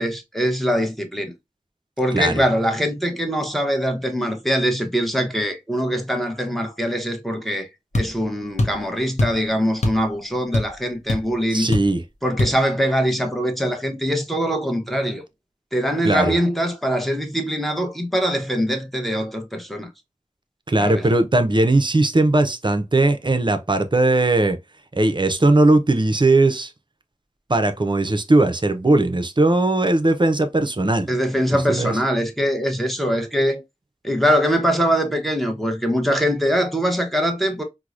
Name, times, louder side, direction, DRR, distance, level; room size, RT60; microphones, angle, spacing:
voice 1, 0.0-1.3 2.0-7.7 7.9-11.7 12.2-15.2 15.7-19.9 20.8-21.1 31.1-33.6 34.0-37.6, equal, ahead, 0.8 m, -22 dB
sound 1, 7.9-8.1 8.6-8.8 9.2-9.4 9.8-10.1 10.3-10.8 11.1-11.2 11.7-12.0 12.4-12.6, left 1 dB, 65° left, 0.8 m, -21 dB
voice 2, 11.5-12.0 16.0-16.3 20.7-24.6 24.9-26.7 27.5-31.1 31.7-31.9, right 2 dB, 40° right, 0.5 m, -18 dB
4.5 x 2.0 x 2.4 m
wide cardioid pair, 45°, 13 cm